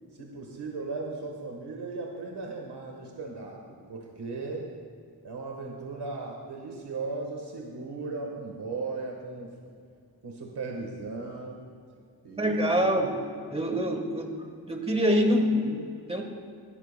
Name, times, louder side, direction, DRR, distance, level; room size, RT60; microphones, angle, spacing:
voice 1, 0.2-4.7 5.2-9.5 10.2-11.6 12.2-12.9, right 3 dB, 80° right, 0 dB, 1.4 m, -37 dB
voice 2, 12.4-13.2 13.5-14.3 14.7-16.2, equal, 15° right, 3 dB, 1.3 m, -25 dB
20.5 x 12.5 x 2.2 m, 2.3 s
wide cardioid pair, 135°, 40 cm